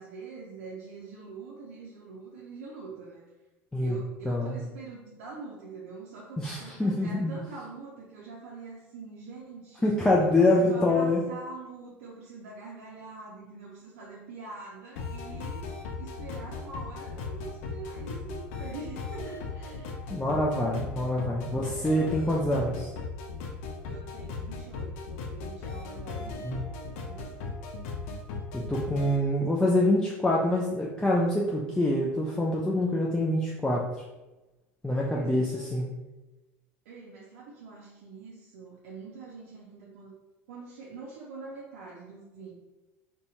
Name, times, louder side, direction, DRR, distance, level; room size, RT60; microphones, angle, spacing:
voice 1, 0.0-3.2 3.8-9.9 10.2-15.6 16.0-20.0 21.5-22.9 23.9-26.7 27.0-27.5 34.9-35.7 36.9-40.1 40.5-42.5, right 4 dB, 75° right, -4 dB, 0.5 m, -44 dB
voice 2, 4.3-4.6 6.4-7.3 9.8-11.2 20.1-22.9 26.4-26.6 28.7-33.8 34.8-35.9, left 1 dB, 10° left, -4 dB, 0.4 m, -25 dB
sound 1, 15.0-29.2, left 4 dB, 70° left, 0.4 m, -37 dB
2.7 x 2.2 x 2.7 m, 1.1 s
hypercardioid pair, 80°, 7 cm